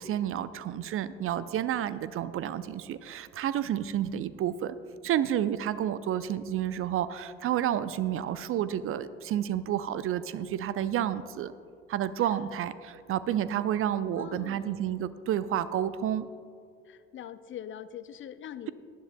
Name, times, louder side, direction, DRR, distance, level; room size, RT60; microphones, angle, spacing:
voice 1, 0.0-4.7 5.0-11.5 11.9-16.3, right 10 dB, 45° right, 15 dB, 0.5 m, -30 dB
voice 2, 14.1-14.8 16.9-18.7, left 10 dB, 40° left, 14 dB, 0.5 m, -42 dB
18.5 x 10.5 x 2.2 m, 2.4 s
figure-of-eight pair, 50°, 31 cm